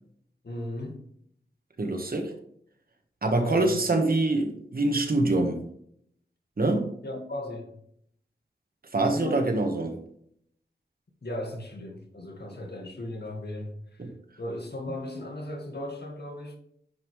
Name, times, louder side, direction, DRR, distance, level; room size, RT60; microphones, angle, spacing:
voice 1, 0.4-1.0 3.4-3.8 7.0-7.7 9.2-9.6 11.2-14.1 14.4-16.6, left 1 dB, 60° left, 1.8 m, -36 dB
voice 2, 1.8-2.3 3.2-5.6 6.6-6.9 8.9-9.9 14.0-14.1, right 2 dB, 55° right, 1.4 m, -25 dB
9.5 x 5.4 x 3.2 m
wide cardioid pair, 65°, 19 cm